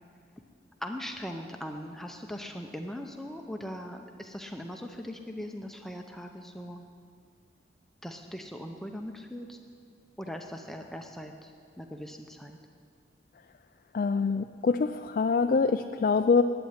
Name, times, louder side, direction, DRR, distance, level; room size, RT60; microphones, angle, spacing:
voice 1, 0.8-6.8 8.0-9.6 10.2-12.6, equal, ahead, 3 dB, 0.6 m, -40 dB
voice 2, 13.9-16.4, left 4 dB, 45° left, 7 dB, 0.3 m, -25 dB
11.5 x 8.6 x 9.6 m, 2.2 s
head